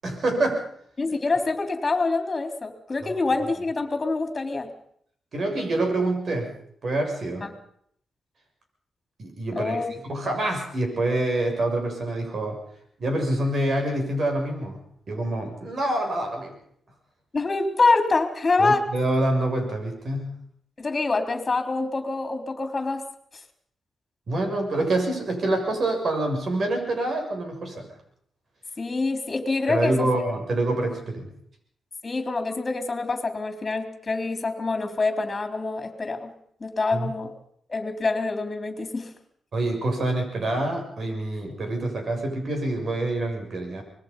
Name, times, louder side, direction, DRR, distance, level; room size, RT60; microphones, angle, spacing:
voice 1, 0.0-0.6 3.0-3.4 5.3-6.5 6.8-7.5 9.2-12.6 13.0-14.8 15.1-16.5 18.6-20.4 24.3-27.9 29.7-31.3 36.9-37.1 39.5-43.8, right 2 dB, 55° right, 4 dB, 7.0 m, -26 dB
voice 2, 1.0-4.7 9.6-9.9 17.3-18.8 20.8-23.0 28.8-30.1 32.0-36.3 36.6-37.3 37.7-39.1, left 3 dB, 30° left, 6 dB, 3.6 m, -25 dB
25.0 x 21.0 x 5.6 m, 0.66 s
cardioid pair, 100°, 0 cm